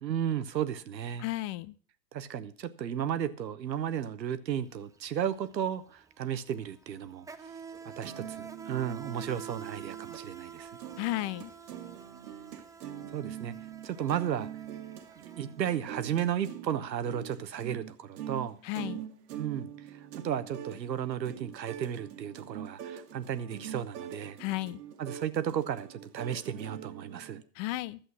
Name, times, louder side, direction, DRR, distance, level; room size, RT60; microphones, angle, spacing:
voice 1, 0.0-1.2 2.1-7.5 7.8-10.8 13.0-13.6 13.8-14.5 15.2-18.6 19.3-24.4 25.0-27.4, right 9 dB, 85° right, 1.0 m, -34 dB
voice 2, 1.2-1.7 11.0-11.5 18.6-19.0 24.4-24.8 27.6-28.0, left 17 dB, 45° left, 0.7 m, -33 dB
Insect, 4.6-4.8 5.0-16.0, right 7 dB, 5° right, 0.5 m, -47 dB
sound 1, 7.7-10.3 10.6-27.4, right 10 dB, 70° right, 1.5 m, -44 dB
11.5 x 7.8 x 6.0 m
hypercardioid pair, 95°, 50 cm